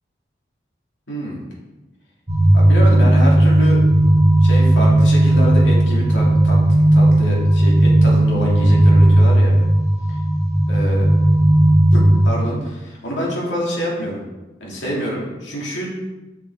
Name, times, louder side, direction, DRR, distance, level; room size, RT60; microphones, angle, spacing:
voice 1, 1.1-1.4 2.5-3.8 4.4-9.5 10.7-11.1 11.9-14.2 14.6-15.9, equal, 85° left, -4 dB, 2.4 m, -26 dB
sound 1, 2.3-12.3, right 1 dB, 35° right, 1.8 m, -14 dB
7.3 x 6.1 x 3.6 m, 1.0 s
head